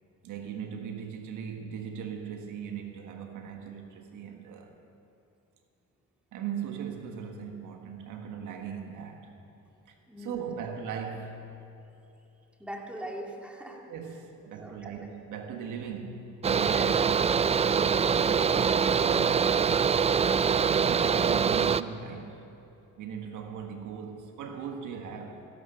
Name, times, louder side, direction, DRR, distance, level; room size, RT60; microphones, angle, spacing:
voice 1, 0.2-4.8 6.3-9.3 10.2-11.6 13.9-17.2 18.9-19.7 20.5-22.5 23.0-25.4, right 7 dB, 80° right, 1.5 m, -39 dB
voice 2, 10.1-10.6 12.6-13.8 14.6-15.1, equal, 5° right, 2.3 m, -42 dB
Mechanical fan, 16.4-21.8, right 6 dB, 20° right, 0.3 m, -24 dB
15.0 x 12.0 x 6.9 m
cardioid pair, 90°, 30 cm